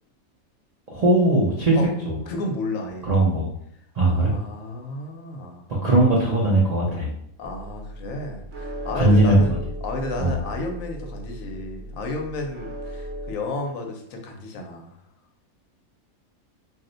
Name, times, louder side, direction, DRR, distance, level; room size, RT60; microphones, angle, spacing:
voice 1, 0.9-1.8 2.1-2.2 3.0-3.5 3.9-4.3 5.8-7.1 8.9-9.6 10.2-10.4, right 1 dB, 75° right, -4 dB, 0.3 m, -19 dB
voice 2, 2.3-3.1 4.0-5.6 7.4-15.0, left 2 dB, 70° left, 3 dB, 1.0 m, -32 dB
sound 1, 7.4-13.3, right 1 dB, 60° right, 0.8 m, -36 dB
2.6 x 2.1 x 3.8 m, 0.71 s
omnidirectional pair, 1.5 m